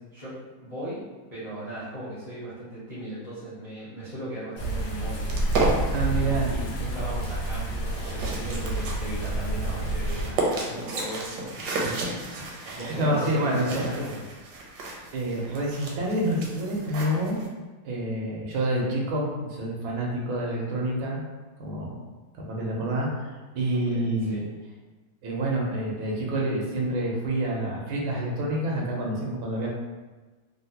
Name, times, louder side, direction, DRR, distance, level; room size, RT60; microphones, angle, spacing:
voice 1, 0.1-1.0 1.3-5.3 5.9-12.0 12.4-14.2 23.7-24.5, right 1 dB, 40° left, -11 dB, 0.5 m, -38 dB
sound 1, 4.6-10.3, right 1 dB, 65° left, 0.9 m, -29 dB
sound 2, 5.2-17.5, right 2 dB, 70° right, 1.0 m, -33 dB
voice 2, 5.9-6.5 11.8-11.9 12.4-13.9 15.1-17.4 17.8-21.2 21.6-21.9 22.3-24.5 25.2-29.7, right 1 dB, 85° right, -2 dB, 1.5 m, -28 dB
3.7 x 2.1 x 2.7 m, 1.3 s
omnidirectional pair, 2.1 m